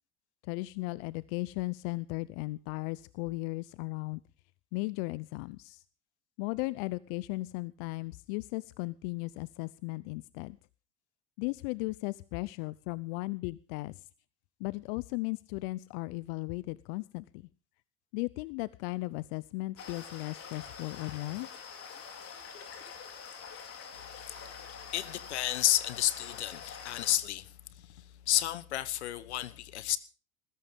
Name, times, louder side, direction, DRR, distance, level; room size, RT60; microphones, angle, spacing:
voice 1, 0.5-4.2 4.7-5.8 6.4-10.6 11.4-14.1 14.6-17.5 18.1-21.5, left 23 dB, 65° left, 0.7 m, -36 dB
sound 1, 19.8-27.2, left 6 dB, 45° left, 4.3 m, -46 dB
voice 2, 24.9-30.0, left 13 dB, 80° left, 1.3 m, -31 dB
20.0 x 16.0 x 3.6 m
hypercardioid pair, 80°, 33 cm